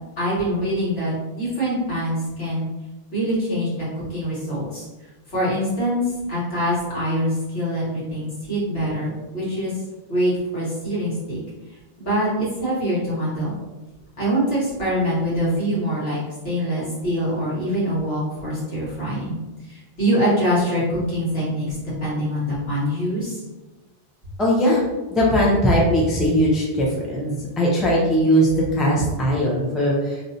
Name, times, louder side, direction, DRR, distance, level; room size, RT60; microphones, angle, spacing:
voice 1, 0.2-2.7 3.1-4.9 5.3-6.0 6.3-9.7 10.1-11.4 12.0-13.6 14.2-19.4 19.7-21.8 22.0-23.4, equal, 75° left, -9 dB, 1.8 m, -24 dB
voice 2, 24.4-24.8 25.1-30.2, equal, ahead, -3 dB, 0.4 m, -19 dB
3.2 x 2.6 x 2.6 m, 1.1 s
omnidirectional pair, 1.0 m